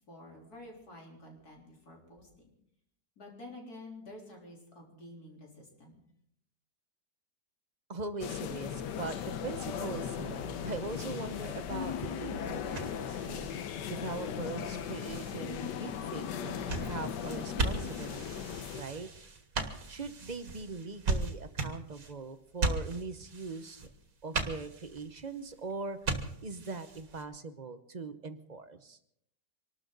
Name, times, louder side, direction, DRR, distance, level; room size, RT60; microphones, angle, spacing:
voice 1, 0.0-2.5 3.2-6.0, left 1 dB, 65° left, -1 dB, 4.3 m, -50 dB
voice 2, 7.9-13.5 13.9-19.1 19.9-23.9 24.2-26.0 26.4-29.0, right 4 dB, 35° right, 9 dB, 0.8 m, -41 dB
sound 1, 8.2-18.8, left 8 dB, 90° left, 1.5 m, -37 dB
sound 2, 9.0-27.2, right 3 dB, 55° right, 2.2 m, -39 dB
25.5 x 12.5 x 4.0 m, 0.73 s
omnidirectional pair, 1.8 m